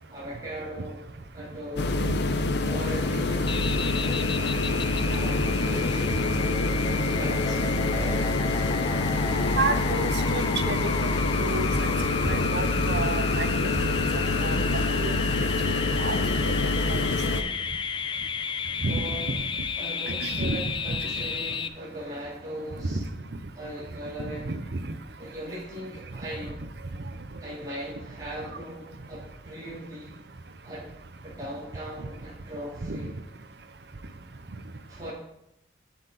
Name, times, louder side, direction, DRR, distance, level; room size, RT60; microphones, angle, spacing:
voice 1, 0.1-1.1 1.3-2.0 2.6-3.5 5.0-6.1 6.9-8.5 18.8-19.4 19.8-23.0 23.5-24.4 25.2-26.6 27.4-30.2 30.6-30.9 31.2-33.1 34.9-35.1, equal, 20° right, -9 dB, 3.1 m, -39 dB
sound 1, 1.8-17.4, left 2 dB, 70° left, 0.7 m, -26 dB
sound 2, 3.5-21.7, left 5 dB, 25° left, 0.3 m, -32 dB
voice 2, 9.3-11.9 12.2-13.7 14.1-15.1 15.6-16.2 16.4-17.0 18.8-19.1 20.1-20.6 20.9-21.3 22.9-23.0 24.2-24.6 32.9-33.1, right 3 dB, 65° right, 11 dB, 0.7 m, -31 dB
8.8 x 8.0 x 4.2 m, 0.83 s
head